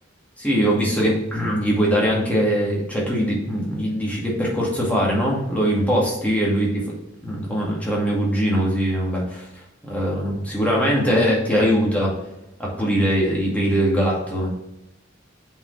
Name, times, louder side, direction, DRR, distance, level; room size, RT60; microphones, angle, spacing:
voice 1, 0.4-6.8 7.2-9.5 9.8-12.1 12.6-14.5, equal, 10° left, -4 dB, 2.2 m, -21 dB
7.6 x 4.7 x 3.3 m, 0.88 s
head